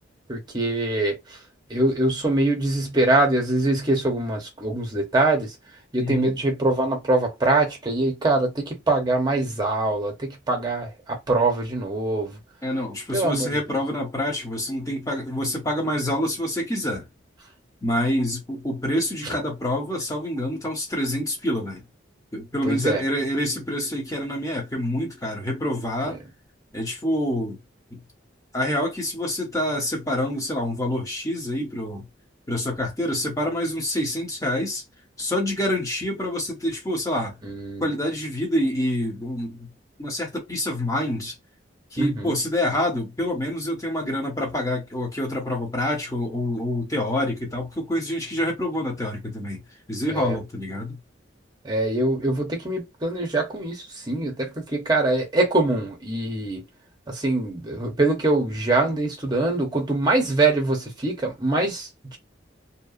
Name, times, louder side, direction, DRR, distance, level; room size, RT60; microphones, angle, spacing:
voice 1, 0.3-1.4 1.7-5.5 5.9-12.4 13.1-13.6 19.2-19.4 22.6-23.0 26.0-26.2 37.4-37.9 42.0-42.3 50.1-50.4 51.6-56.6 57.1-62.2, right 2 dB, 20° right, 0.9 m, -23 dB
voice 2, 6.0-6.3 12.6-17.1 17.8-21.8 22.3-26.2 26.7-27.6 27.9-28.0 28.5-32.1 32.5-34.8 35.2-37.4 37.8-39.7 40.0-41.3 41.9-49.6 49.9-51.0, left 1 dB, 20° left, 0.8 m, -27 dB
2.8 x 2.3 x 2.4 m
head